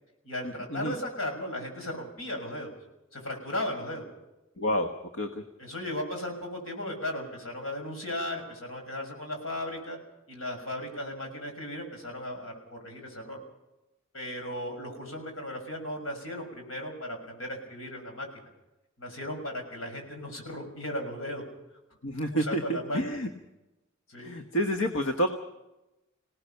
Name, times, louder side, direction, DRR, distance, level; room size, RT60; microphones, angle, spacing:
voice 1, 0.2-2.7 3.1-4.1 5.6-10.0 10.3-13.4 14.1-18.3 19.0-21.4 22.3-23.0 24.1-24.4, left 1 dB, 90° left, 3 dB, 6.2 m, -36 dB
voice 2, 4.6-4.9 5.2-5.4 22.0-23.3 24.2-25.3, equal, 75° left, 6 dB, 1.3 m, -29 dB
26.0 x 18.0 x 5.8 m, 0.97 s
head